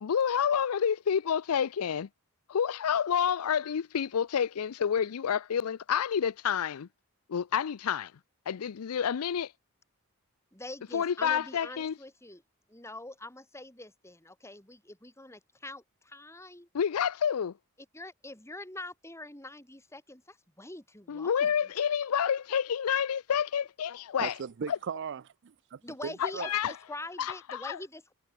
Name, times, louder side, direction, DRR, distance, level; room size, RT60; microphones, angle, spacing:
voice 1, 0.0-2.1 2.5-6.9 7.3-8.1 8.5-9.5 10.9-11.9 16.7-17.5 21.1-24.4 24.7-24.8 26.2-26.7 27.2-27.8, left 8 dB, 80° left, 0.5 m, -29 dB
voice 2, 10.5-12.4 12.7-16.7 17.9-21.5 25.8-28.1, left 2 dB, 10° left, 4.3 m, -44 dB
voice 3, 24.2-26.5, right 6 dB, 55° right, 0.4 m, -38 dB
head